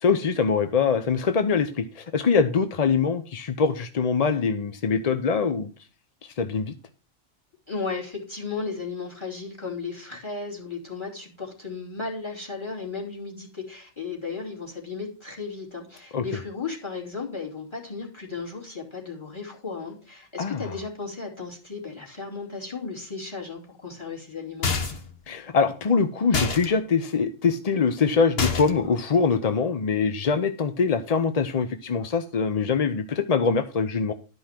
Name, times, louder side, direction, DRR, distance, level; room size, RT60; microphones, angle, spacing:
voice 1, 0.0-5.7 6.2-6.7 16.1-16.2 20.4-20.6 25.3-34.1, left 5 dB, 40° left, 9 dB, 0.6 m, -23 dB
voice 2, 7.7-24.7, left 4 dB, 25° left, 1 dB, 3.0 m, -35 dB
sound 1, 24.6-25.1 26.3-26.7 28.4-28.9, left 4 dB, 60° left, 1.5 m, -26 dB
12.0 x 5.5 x 5.8 m, 0.36 s
omnidirectional pair, 1.2 m